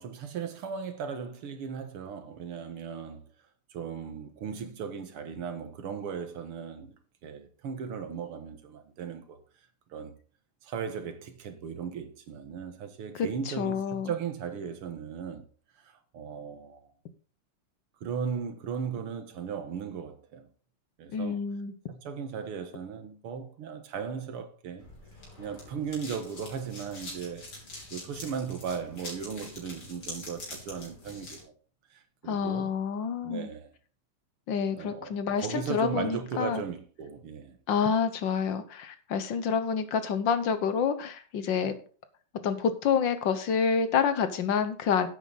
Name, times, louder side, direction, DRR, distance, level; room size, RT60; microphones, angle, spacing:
voice 1, 0.0-3.3 3.7-7.0 7.2-9.4 9.9-10.1 10.6-15.5 15.8-16.8 18.0-20.5 21.0-21.4 21.9-24.9 25.4-27.5 27.9-31.5 31.9-32.7 33.2-33.7 34.8-37.6, right 6 dB, 85° right, 2.3 m, -37 dB
voice 2, 13.2-14.1 21.1-21.7 32.3-33.5 34.5-36.6 37.7-41.8 42.4-45.1, left 6 dB, 65° left, 1.6 m, -28 dB
sound 1, 24.8-31.4, left 2 dB, 85° left, 5.0 m, -44 dB
10.5 x 8.7 x 4.0 m
omnidirectional pair, 2.4 m